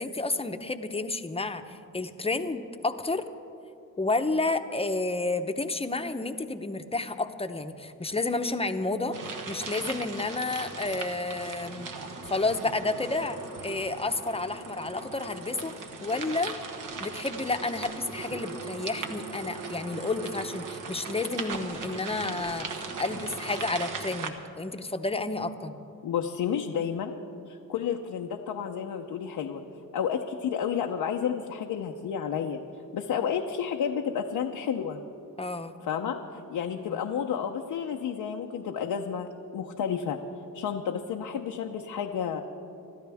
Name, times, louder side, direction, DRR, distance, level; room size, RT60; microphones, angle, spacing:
voice 1, 0.0-3.3 4.0-11.9 12.3-15.7 16.0-16.5 17.0-25.8 35.4-35.7 36.9-37.0, left 3 dB, 15° left, 8 dB, 0.8 m, -31 dB
sound 1, 9.1-24.3, right 4 dB, 65° right, 1.4 m, -38 dB
voice 2, 26.0-27.2 27.5-29.6 29.9-32.6 32.9-35.0 35.8-40.2 40.5-42.4, left 8 dB, 90° left, 2 dB, 0.8 m, -31 dB
25.5 x 13.0 x 3.5 m, 2.7 s
cardioid pair, 90°, 35 cm